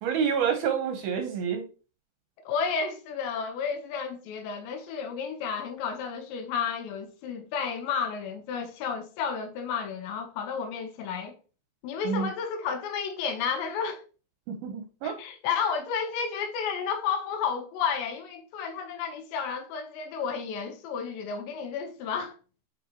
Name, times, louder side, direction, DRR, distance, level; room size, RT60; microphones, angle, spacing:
voice 1, 0.0-1.6 12.1-12.3 14.5-15.2, right 7 dB, 75° right, 2.4 m, -28 dB
voice 2, 2.4-11.4 11.8-14.0 15.0-22.4, left 6 dB, 85° left, 3.3 m, -32 dB
8.2 x 5.1 x 2.9 m
omnidirectional pair, 5.1 m